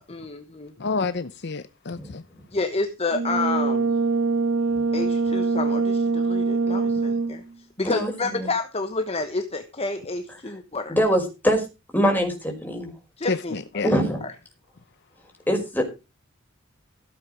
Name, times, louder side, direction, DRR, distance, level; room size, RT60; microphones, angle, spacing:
voice 1, 0.0-0.7 2.5-3.9 4.9-7.4 7.8-11.0 13.2-13.9, left 3 dB, 30° left, 1.2 m, -29 dB
voice 2, 0.8-2.2 13.3-13.9, left 4 dB, 55° left, 0.8 m, -29 dB
Brass instrument, 3.1-7.5, right 4 dB, 85° right, 2.2 m, -23 dB
voice 3, 7.8-8.5 10.5-10.6 10.9-11.6 11.9-12.9 13.8-14.2 15.5-15.8, equal, 10° left, 5.2 m, -23 dB
15.5 x 8.5 x 5.1 m
head